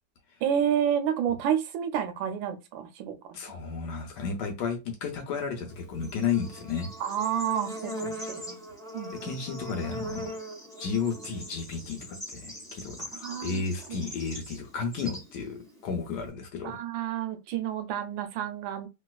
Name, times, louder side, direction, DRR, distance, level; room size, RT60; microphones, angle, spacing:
voice 1, 0.4-3.6 7.0-8.6 8.9-9.2 13.0-14.0 16.6-18.9, right 9 dB, 90° right, 1.4 m, -30 dB
voice 2, 3.3-6.9 9.1-10.2 10.8-16.8, left 5 dB, 70° left, 1.2 m, -33 dB
Bird / Insect, 5.7-16.3, equal, ahead, 1.4 m, -41 dB
3.0 x 2.9 x 2.3 m
omnidirectional pair, 2.1 m